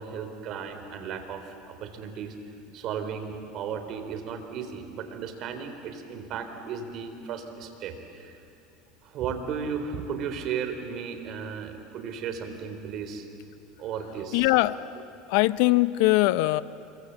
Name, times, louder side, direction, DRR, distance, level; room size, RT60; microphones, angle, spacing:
voice 1, 0.0-2.4 2.7-8.4 9.0-13.3 13.8-14.5, right 6 dB, 55° right, 7 dB, 3.7 m, -35 dB
voice 2, 14.3-14.8 15.3-16.6, left 19 dB, 70° left, 16 dB, 0.6 m, -21 dB
27.0 x 24.0 x 8.2 m, 2.6 s
hypercardioid pair, 95°, 0 cm